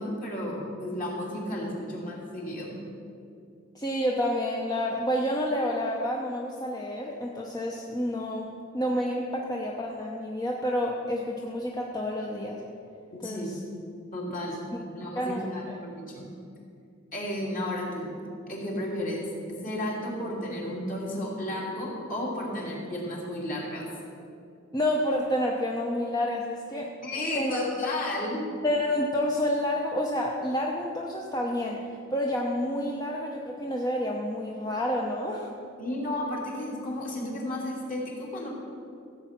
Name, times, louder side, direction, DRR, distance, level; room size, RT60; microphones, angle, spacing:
voice 1, 0.0-2.8 13.1-13.5 14.1-14.6 14.9-16.3 17.1-18.2 18.5-19.3 19.6-23.9 27.0-28.4 35.8-38.5, left 1 dB, 45° left, -3 dB, 3.0 m, -33 dB
voice 2, 3.7-8.5 8.7-12.6 13.2-13.5 15.1-15.8 24.7-26.9 27.3-27.7 28.6-31.8 32.1-35.5, left 1 dB, 20° left, -1 dB, 0.9 m, -29 dB
15.0 x 8.1 x 5.9 m, 2.5 s
head